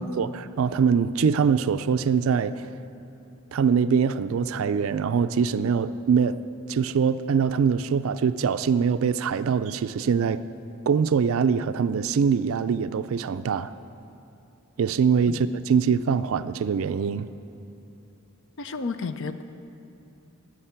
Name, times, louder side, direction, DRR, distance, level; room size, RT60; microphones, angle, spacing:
voice 1, 0.0-2.7 3.5-6.4 6.7-10.4 10.9-13.7 14.8-17.3, right 6 dB, 65° right, 12 dB, 0.4 m, -23 dB
voice 2, 18.6-19.4, left 4 dB, 60° left, 10 dB, 0.6 m, -31 dB
10.0 x 8.3 x 9.7 m, 2.7 s
head